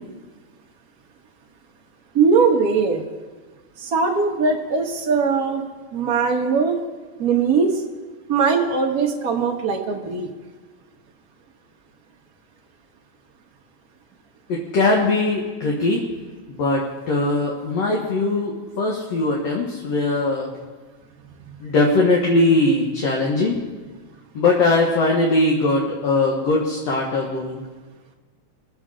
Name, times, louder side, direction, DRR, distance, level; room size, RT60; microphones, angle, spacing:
voice 1, 2.1-3.0 3.8-5.6 5.9-6.8 7.2-7.8 8.3-10.3, right 5 dB, 70° right, -1 dB, 0.8 m, -20 dB
voice 2, 14.5-16.0 16.5-20.5 21.6-23.6 24.4-27.6, left 2 dB, 60° left, -2 dB, 2.4 m, -20 dB
22.5 x 8.0 x 4.9 m, 1.4 s
omnidirectional pair, 3.5 m